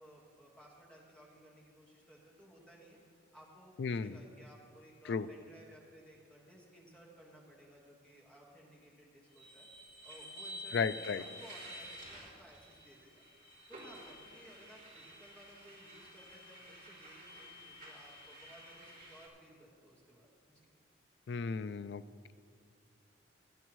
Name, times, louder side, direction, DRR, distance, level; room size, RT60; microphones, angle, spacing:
voice 1, 0.0-3.0 3.3-9.7 10.0-13.2 13.7-20.7, equal, 5° left, -4 dB, 1.6 m, -58 dB
voice 2, 3.8-4.2 5.1-5.3 10.7-11.2 21.3-22.0, left 5 dB, 60° left, 14 dB, 0.3 m, -34 dB
sound 1, 9.3-19.3, equal, 50° right, 2.8 m, -51 dB
17.5 x 10.5 x 3.1 m, 2.2 s
head